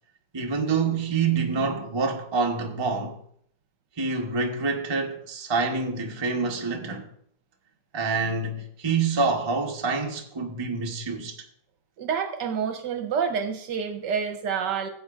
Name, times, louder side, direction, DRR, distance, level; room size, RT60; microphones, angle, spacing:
voice 1, 0.3-3.2 4.0-7.1 7.9-11.4, right 4 dB, 25° right, 0.6 m, -27 dB
voice 2, 12.0-14.9, right 6 dB, 70° right, 1.3 m, -28 dB
17.0 x 7.7 x 2.5 m
omnidirectional pair, 2.1 m